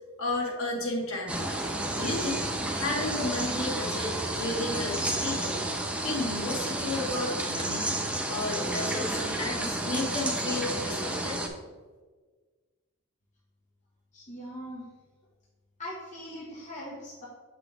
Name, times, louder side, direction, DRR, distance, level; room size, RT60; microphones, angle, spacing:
voice 1, 0.2-1.5 2.0-2.4 2.8-5.6 6.0-7.9 8.3-11.4, left 2 dB, 65° left, -2 dB, 1.7 m, -32 dB
sound 1, 1.3-11.5, right 1 dB, 5° right, 0.7 m, -31 dB
voice 2, 14.1-14.8 15.8-17.3, equal, 35° left, -6 dB, 1.5 m, -40 dB
7.4 x 5.9 x 3.5 m, 1.4 s
head